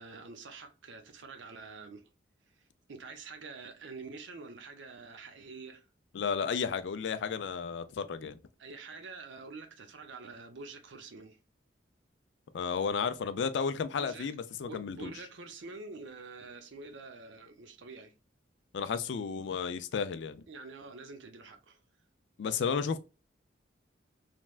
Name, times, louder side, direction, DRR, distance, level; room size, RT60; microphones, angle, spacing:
voice 1, 0.0-2.0 2.9-5.8 8.6-11.4 14.0-14.3 14.7-18.1 20.5-21.8, right 4 dB, 80° right, 0.6 m, -47 dB
voice 2, 6.1-8.4 12.5-15.1 18.7-20.4 22.4-23.0, left 6 dB, 70° left, 0.4 m, -33 dB
3.3 x 2.1 x 2.3 m
head